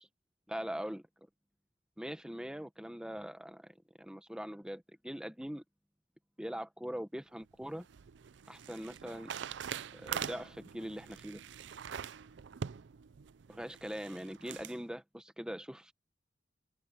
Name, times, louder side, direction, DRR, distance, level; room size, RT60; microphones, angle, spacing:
voice 1, 0.5-1.0 2.0-5.6 6.4-7.9 8.5-9.3 9.9-11.4 13.5-15.9, equal, 5° right, 0.9 m, -42 dB
sound 1, 7.4-14.8, right 8 dB, 65° right, 0.4 m, -44 dB
head